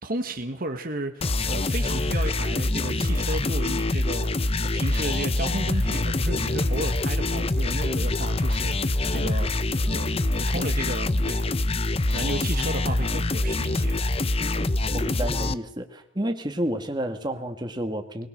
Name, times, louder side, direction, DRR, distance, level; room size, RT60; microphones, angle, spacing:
voice 1, 0.0-11.5 12.1-14.0, right 1 dB, 45° right, 6 dB, 1.7 m, -33 dB
sound 1, 1.2-15.5, left 2 dB, 30° left, 0.8 m, -25 dB
sound 2, 5.6-13.8, left 1 dB, 75° left, 1.6 m, -41 dB
voice 2, 14.9-18.3, right 1 dB, 20° right, 5 dB, 2.2 m, -30 dB
23.0 x 21.0 x 6.8 m, 0.70 s
head